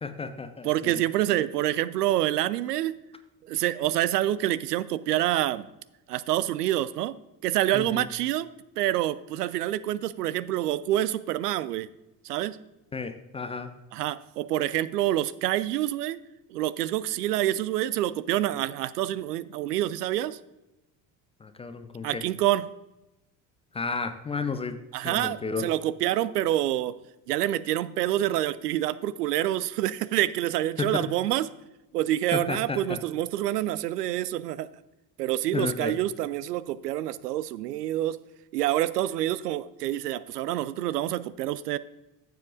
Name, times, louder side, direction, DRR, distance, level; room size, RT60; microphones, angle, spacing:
voice 1, 0.0-1.0 7.7-8.1 12.9-13.7 21.4-22.2 23.7-24.8 25.0-25.7 30.8-31.1 32.3-33.0 35.5-35.9, left 4 dB, 15° left, 9 dB, 0.4 m, -32 dB
voice 2, 0.6-2.9 3.5-5.7 6.1-7.1 7.4-8.5 8.8-11.9 12.2-12.6 13.9-16.2 16.5-20.4 22.0-22.7 24.9-26.9 27.3-31.5 31.9-34.7 35.2-38.2 38.5-41.8, right 13 dB, 70° right, 16 dB, 0.5 m, -27 dB
14.0 x 7.4 x 2.6 m, 0.97 s
figure-of-eight pair, 60°, 50 cm